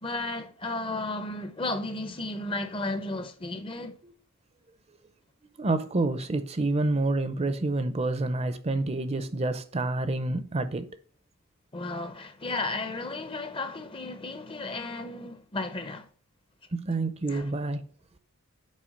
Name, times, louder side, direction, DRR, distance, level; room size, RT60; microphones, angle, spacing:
voice 1, 0.0-4.0 11.7-16.1 17.3-17.5, left 2 dB, 25° left, 0.6 m, -34 dB
voice 2, 5.6-10.9 16.7-17.8, right 2 dB, 30° right, 0.5 m, -28 dB
7.4 x 4.6 x 5.1 m
head